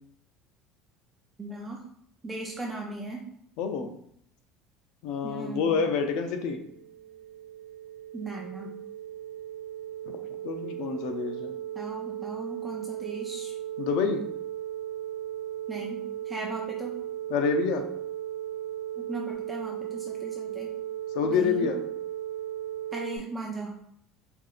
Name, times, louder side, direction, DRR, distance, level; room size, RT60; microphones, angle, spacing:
voice 1, 1.4-1.8 2.2-3.2 5.2-5.8 8.1-8.7 11.7-13.5 15.7-17.0 19.0-20.7 21.3-21.7 22.9-23.7, right 2 dB, 15° right, -1 dB, 0.5 m, -37 dB
voice 2, 3.6-3.9 5.0-6.6 10.4-11.5 13.8-14.2 17.3-17.8 21.1-21.8, left 5 dB, 70° left, 6 dB, 0.5 m, -27 dB
sound 1, 6.2-23.2, right 11 dB, 75° right, 1.1 m, -37 dB
4.5 x 2.6 x 2.4 m, 0.67 s
supercardioid pair, 105°, 0 cm